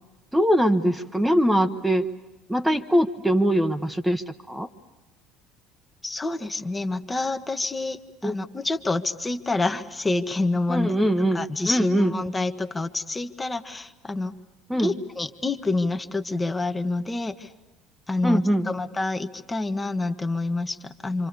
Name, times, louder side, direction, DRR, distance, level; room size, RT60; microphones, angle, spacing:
voice 1, 0.3-2.1 2.5-4.7 8.2-8.3 10.7-12.1 14.7-14.9 18.2-18.7, equal, 5° right, 7 dB, 1.2 m, -22 dB
voice 2, 6.0-14.3 14.8-17.5 18.1-21.3, left 2 dB, 15° left, 7 dB, 1.3 m, -28 dB
27.5 x 26.5 x 6.8 m, 1.1 s
figure-of-eight pair, 60°, 0 cm